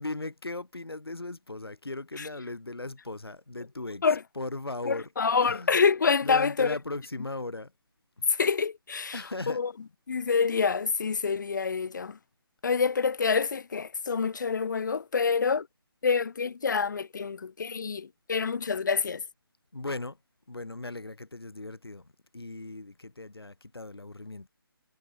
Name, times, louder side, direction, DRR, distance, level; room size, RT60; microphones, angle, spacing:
voice 1, 0.0-4.1 4.3-5.1 5.4-5.8 6.2-7.7 8.2-8.3 9.1-9.6 19.7-20.2 20.5-24.5, left 2 dB, 75° left, 4.8 m, -37 dB
voice 2, 4.9-6.7 8.4-9.2 9.5-9.7 10.1-12.2 12.6-15.7 16.0-19.2, left 5 dB, 50° left, 0.5 m, -27 dB
figure-of-eight pair, 150°, 13 cm